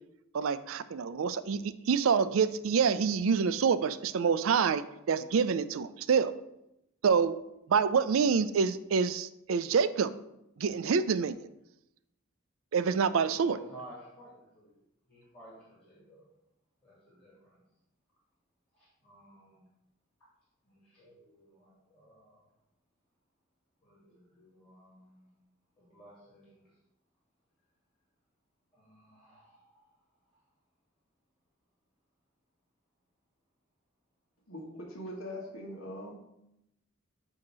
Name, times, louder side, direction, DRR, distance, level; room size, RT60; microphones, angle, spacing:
voice 1, 0.3-6.3 7.0-7.4 7.7-10.1 10.6-11.5 12.7-13.6, right 6 dB, 75° right, 14 dB, 0.4 m, -27 dB
voice 2, 13.3-14.8 15.1-16.2 16.8-17.6 18.7-19.7 20.6-22.4 23.8-25.3 25.8-26.7 28.7-29.9 30.3-30.4, right 1 dB, 25° left, -8 dB, 2.4 m, -54 dB
voice 3, 34.5-36.1, equal, 75° left, 0 dB, 1.5 m, -41 dB
8.7 x 2.9 x 6.1 m, 0.86 s
head